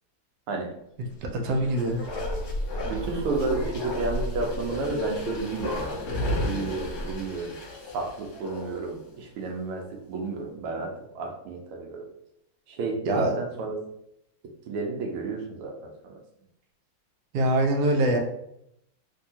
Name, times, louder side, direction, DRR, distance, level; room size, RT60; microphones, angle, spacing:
voice 1, 1.2-2.0 13.0-13.3 17.3-18.2, right 1 dB, 70° right, 2 dB, 1.0 m, -23 dB
Bark, 1.4-9.0 9.3-9.4, left 1 dB, 65° left, 0.7 m, -32 dB
voice 2, 2.9-7.6 7.9-12.1 12.7-13.8 14.7-16.2, right 3 dB, 85° right, 1 dB, 1.6 m, -32 dB
3.5 x 2.7 x 2.7 m, 0.78 s
omnidirectional pair, 2.3 m